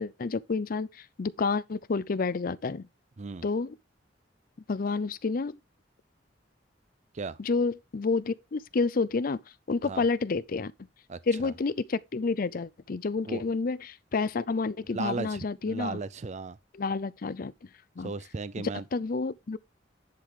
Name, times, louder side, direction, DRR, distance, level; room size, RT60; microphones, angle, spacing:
voice 1, 0.0-2.9 3.4-3.8 4.7-5.6 7.4-9.4 9.7-10.7 11.3-16.0 16.7-17.5 18.0-18.1 18.6-19.6, left 4 dB, 50° left, 0.5 m, -29 dB
voice 2, 11.1-11.5 13.3-13.4 14.9-16.6 18.0-18.9, right 4 dB, 40° right, 0.5 m, -36 dB
10.5 x 3.9 x 4.8 m
head